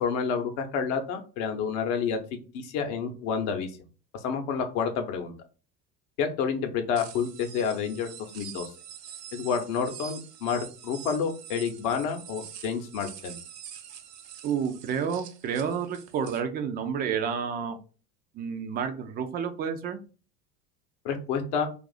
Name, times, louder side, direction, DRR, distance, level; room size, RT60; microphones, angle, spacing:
voice 1, 0.0-2.2 2.5-3.7 4.2-5.3 6.2-8.6 9.3-13.4 21.0-21.7, left 6 dB, 55° left, 6 dB, 0.8 m, -29 dB
sound 1, 7.0-16.4, right 9 dB, 80° right, 0.6 m, -45 dB
voice 2, 14.4-17.8 18.3-20.0, right 7 dB, 25° right, 7 dB, 0.3 m, -30 dB
2.6 x 2.4 x 3.9 m, 0.35 s
figure-of-eight pair, 75°, 48 cm